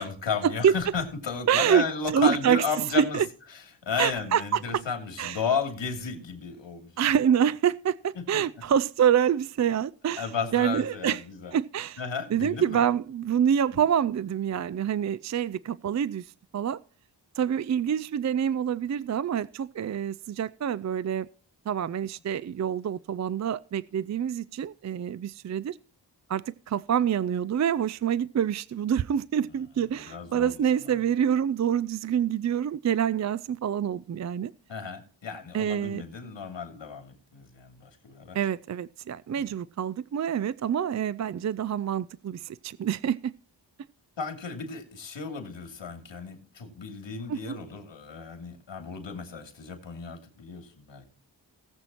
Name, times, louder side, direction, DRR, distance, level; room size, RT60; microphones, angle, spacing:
voice 1, 0.0-3.2 3.5-6.9 8.2-8.4 10.2-11.5 12.0-12.8 13.7-13.8 30.1-30.5 34.7-38.4 44.2-51.0, left 5 dB, 85° left, 2.7 m, -33 dB
voice 2, 1.5-1.8 2.1-2.6 2.9-3.3 4.0-4.8 5.2-5.4 7.0-11.2 11.5-12.0 12.3-16.8 17.4-21.3 21.7-25.8 26.3-34.5 35.5-36.0 38.3-43.3 47.3-47.6, right 9 dB, 40° right, 0.4 m, -26 dB
18.5 x 7.9 x 2.9 m
wide cardioid pair, 70°, 44 cm